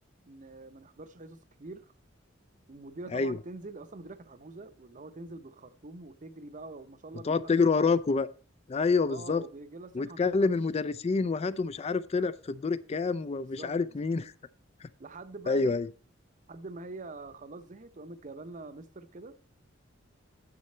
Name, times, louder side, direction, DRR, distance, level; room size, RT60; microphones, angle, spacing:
voice 1, 0.3-1.9 2.7-7.9 9.1-10.5 13.4-14.1 15.0-15.8 16.5-19.4, right 3 dB, 40° right, 0.6 m, -45 dB
voice 2, 7.2-8.3 8.7-9.4 9.9-14.3 14.8-14.9 15.5-15.9, left 4 dB, 30° left, 0.4 m, -27 dB
9.7 x 7.6 x 4.3 m
head